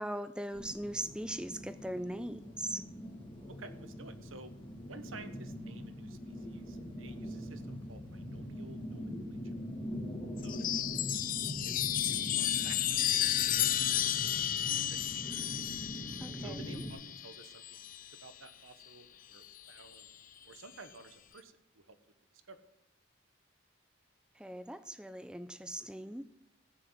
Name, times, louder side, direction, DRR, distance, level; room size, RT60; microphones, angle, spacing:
voice 1, 0.0-2.9 16.2-16.8 24.4-26.3, right 1 dB, 5° right, 13 dB, 0.5 m, -40 dB
sound 1, 0.5-16.9, equal, 25° left, 1.9 m, -43 dB
voice 2, 3.5-4.5 4.9-9.4 10.4-13.7 14.0-15.5 16.4-20.1 20.4-22.0 22.3-22.6, right 4 dB, 85° right, 10 dB, 1.1 m, -53 dB
Chime, 10.4-18.2 19.4-20.1, left 12 dB, 45° left, 0.5 m, -33 dB
15.5 x 6.2 x 7.8 m, 0.89 s
head